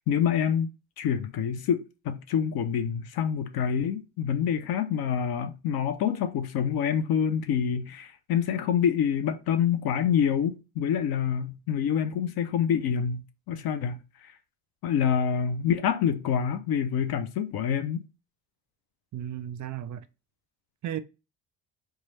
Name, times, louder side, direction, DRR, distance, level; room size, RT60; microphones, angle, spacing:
voice 1, 0.1-0.7 1.0-13.2 13.5-14.0 14.2-14.3 14.8-18.0, left 8 dB, 60° left, 0.5 m, -26 dB
voice 2, 19.1-20.0 20.8-21.0, right 11 dB, 45° right, 0.4 m, -34 dB
3.0 x 2.3 x 4.1 m
hypercardioid pair, 60°, 43 cm